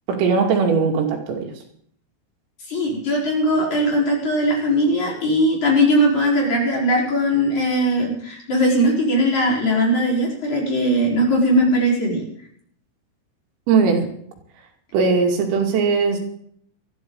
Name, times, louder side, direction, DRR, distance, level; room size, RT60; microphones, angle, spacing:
voice 1, 0.1-1.5 13.7-14.1 14.9-16.2, right 5 dB, 85° right, 1 dB, 5.3 m, -19 dB
voice 2, 2.7-12.2, equal, 35° left, -2 dB, 5.6 m, -19 dB
20.5 x 14.0 x 4.0 m, 0.63 s
omnidirectional pair, 5.8 m